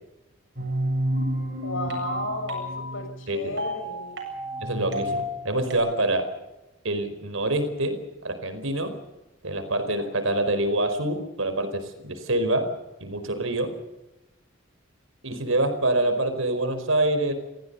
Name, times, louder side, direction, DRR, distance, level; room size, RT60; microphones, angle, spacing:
sound 1, 0.6-5.8, equal, 60° right, 7.7 m, -30 dB
voice 1, 1.6-4.1, left 2 dB, 75° left, 6 dB, 6.3 m, -33 dB
voice 2, 4.6-6.3 6.8-9.0 9.4-12.7 13.0-13.7 15.2-17.3, right 1 dB, 85° right, 9 dB, 4.7 m, -26 dB
28.5 x 16.5 x 6.9 m, 0.97 s
head